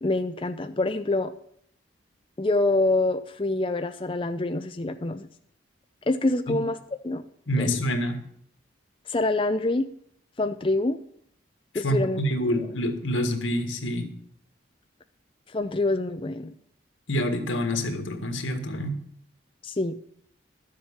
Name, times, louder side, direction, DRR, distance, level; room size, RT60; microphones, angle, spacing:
voice 1, 0.0-1.3 2.4-5.3 6.1-6.8 7.0-7.2 7.6-7.7 9.1-9.9 10.4-11.0 11.7-12.3 12.5-12.7 15.5-16.5 19.6-20.0, left 2 dB, 25° left, 7 dB, 0.5 m, -26 dB
voice 2, 7.5-8.2 11.8-14.1 17.1-19.0, equal, 85° left, 6 dB, 1.9 m, -27 dB
12.0 x 7.5 x 7.3 m, 0.67 s
head